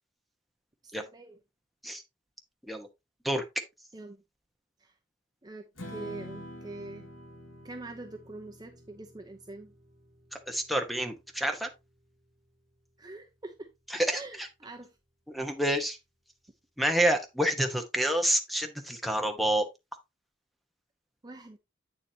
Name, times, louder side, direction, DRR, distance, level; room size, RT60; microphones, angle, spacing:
voice 1, 0.8-1.4 3.9-4.2 4.8-4.9 5.4-7.1 7.6-9.7 13.0-13.7 14.1-14.9 21.2-21.6, right 2 dB, 20° right, 0.8 m, -44 dB
Strum, 5.8-12.1, left 1 dB, 85° left, 2.4 m, -48 dB
voice 2, 10.5-11.7 13.9-14.5 15.3-16.0 16.8-19.7, right 1 dB, ahead, 1.1 m, -28 dB
8.4 x 7.2 x 2.8 m
head